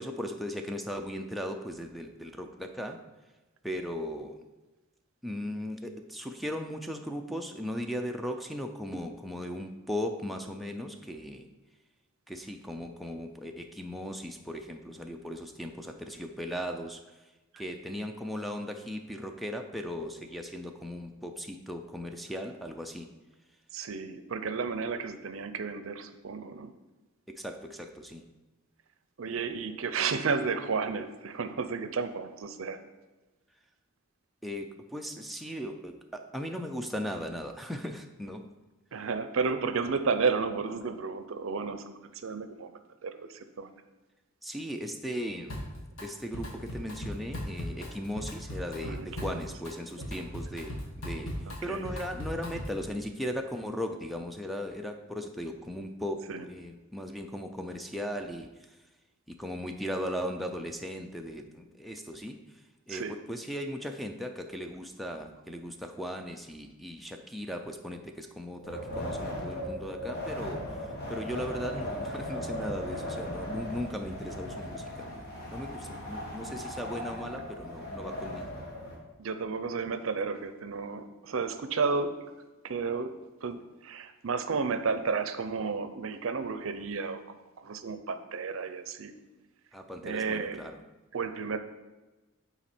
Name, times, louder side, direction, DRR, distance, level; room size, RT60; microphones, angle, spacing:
voice 1, 0.0-3.0 3.6-4.4 5.2-11.5 12.3-17.0 17.6-23.1 27.3-28.2 34.4-38.4 44.4-45.6 46.0-51.4 51.6-58.5 59.3-62.4 62.9-70.6 71.1-78.5 89.7-90.7, equal, ahead, 4 dB, 0.4 m, -37 dB
voice 2, 23.7-26.7 29.2-32.8 38.9-42.7 43.0-43.7 48.8-49.5 50.0-50.1 51.5-51.9 56.3-56.5 62.9-63.2 79.2-82.1 82.6-83.1 83.4-87.2 87.6-89.1 90.0-90.6 91.1-91.6, right 5 dB, 70° right, 10 dB, 0.5 m, -32 dB
Drum kit, 45.5-46.1 46.3-52.9, equal, 75° left, 1.5 m, -38 dB
Wind, 68.6-79.0, equal, 50° left, 1.4 m, -37 dB
8.9 x 4.1 x 4.3 m, 1.1 s
head